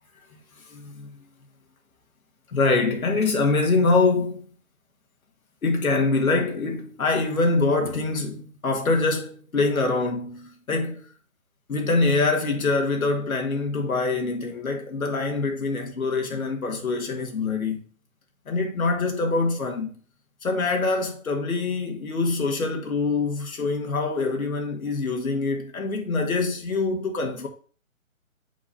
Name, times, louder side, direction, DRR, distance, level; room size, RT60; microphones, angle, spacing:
voice 1, 0.6-1.2 2.5-4.4 5.6-11.1 11.7-17.8 18.5-19.9 20.4-27.5, left 3 dB, 80° left, 1.6 m, -24 dB
8.3 x 2.9 x 5.7 m
hypercardioid pair, 180°, 42 cm